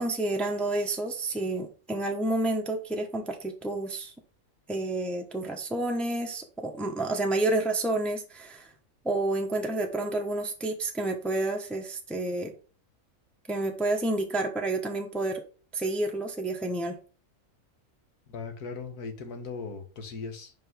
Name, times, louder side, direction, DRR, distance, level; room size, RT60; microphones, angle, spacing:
voice 1, 0.0-4.1 4.7-8.7 9.0-12.5 13.5-15.4 15.7-17.0, right 2 dB, ahead, 0.9 m, -29 dB
voice 2, 18.3-20.5, left 4 dB, 90° left, 1.8 m, -38 dB
5.3 x 5.3 x 3.7 m
omnidirectional pair, 1.6 m